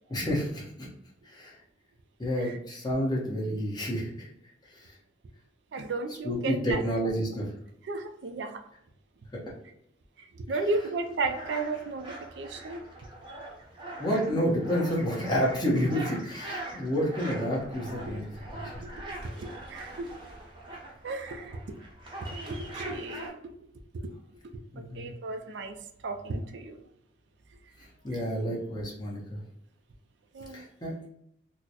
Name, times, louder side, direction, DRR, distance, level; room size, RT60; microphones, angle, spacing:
voice 1, 0.1-0.9 1.2-1.5 2.2-4.3 4.7-4.9 6.2-7.5 14.0-18.2 24.7-25.1 28.0-29.4 30.5-30.9, equal, 25° left, -4 dB, 1.0 m, -29 dB
voice 2, 5.7-6.8 7.8-8.6 10.2-12.8 13.3-13.4 18.8-18.9 19.4-20.1 21.0-21.6 22.2-23.5 23.9-24.1 24.8-25.8 26.0-26.8 28.1-28.2 30.3-30.6, right 3 dB, 70° right, 6 dB, 0.4 m, -34 dB
sound 1, 10.7-23.3, right 1 dB, 25° right, 0.7 m, -42 dB
4.0 x 2.1 x 2.8 m, 0.73 s
head